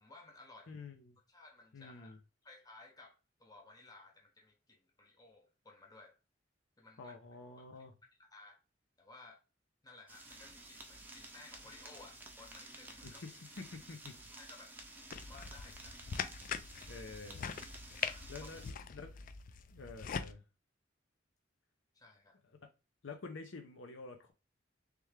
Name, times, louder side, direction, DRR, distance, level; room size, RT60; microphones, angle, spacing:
voice 1, 0.0-0.8 1.3-6.2 6.8-7.1 7.7-7.8 8.3-8.6 9.0-9.4 9.8-13.2 14.3-14.8 15.2-16.0 18.0-18.3 21.9-22.4, left 2 dB, 20° left, 0.8 m, -57 dB
voice 2, 0.7-1.2 1.7-2.2 7.0-7.9 13.0-14.2 16.9-17.4 18.3-19.1 19.7-20.4 23.0-24.3, left 4 dB, 85° left, 0.7 m, -49 dB
sound 1, 10.1-18.7, right 2 dB, 10° right, 0.7 m, -53 dB
sound 2, 15.1-20.3, left 6 dB, 45° left, 0.4 m, -42 dB
3.4 x 3.3 x 3.2 m
head